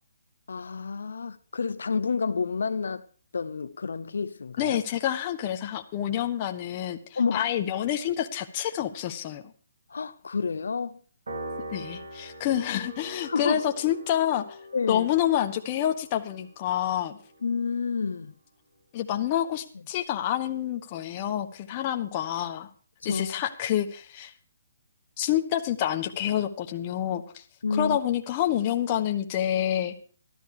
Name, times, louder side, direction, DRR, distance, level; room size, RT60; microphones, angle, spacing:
voice 1, 0.5-3.1 3.3-4.8 7.1-7.5 9.9-11.0 13.3-13.6 14.7-15.1 17.4-18.3 23.0-23.4 27.6-28.0, left 5 dB, 85° left, 0.7 m, -29 dB
voice 2, 4.6-9.4 11.7-14.6 14.9-17.2 18.9-22.7 23.0-24.3 25.2-27.4 27.7-30.0, left 11 dB, 30° left, 1.3 m, -28 dB
Piano, 11.3-17.8, right 1 dB, 80° right, 4.7 m, -43 dB
13.0 x 13.0 x 4.8 m
hypercardioid pair, 160°, 0 cm